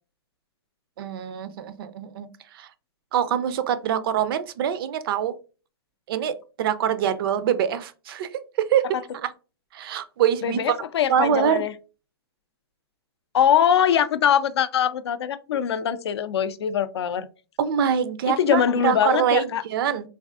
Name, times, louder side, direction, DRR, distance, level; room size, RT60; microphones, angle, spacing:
voice 1, 1.0-2.7 3.1-5.3 6.1-8.8 9.2-9.3 9.7-10.8 11.1-11.6 17.6-20.1, right 9 dB, 60° right, 0.4 m, -24 dB
voice 2, 10.4-11.7 13.3-17.3 18.3-19.6, left 9 dB, 85° left, 0.4 m, -22 dB
3.3 x 2.5 x 2.3 m
hypercardioid pair, 130°, 13 cm